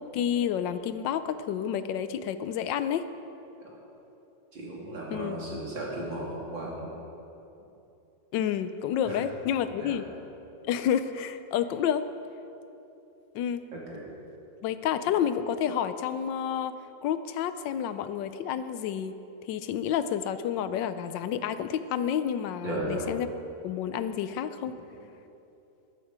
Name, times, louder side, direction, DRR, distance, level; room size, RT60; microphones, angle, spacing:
voice 1, 0.0-3.1 5.1-5.4 8.3-10.1 10.6-12.1 13.3-13.6 14.6-16.8 17.0-19.2 19.5-23.3 23.6-24.8, left 9 dB, 80° left, 12 dB, 1.3 m, -29 dB
voice 2, 4.5-6.9 9.0-9.2 9.8-10.0 13.7-14.0 22.6-23.2, right 1 dB, 80° right, -4 dB, 3.4 m, -35 dB
13.0 x 12.5 x 5.0 m, 2.9 s
omnidirectional pair, 2.0 m